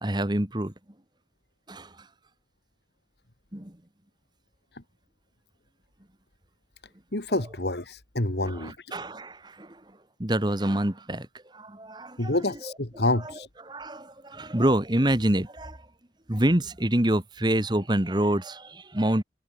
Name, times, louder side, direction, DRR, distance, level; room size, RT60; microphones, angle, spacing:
voice 1, 0.0-0.7 1.7-1.9 3.5-3.7 8.4-9.8 10.2-11.3 11.5-12.4 12.6-12.7 13.6-15.8 16.3-19.2, right 1 dB, 25° right, 1.5 m, -26 dB
voice 2, 7.1-8.9 12.2-13.5, left 2 dB, 70° left, 2.8 m, -28 dB
head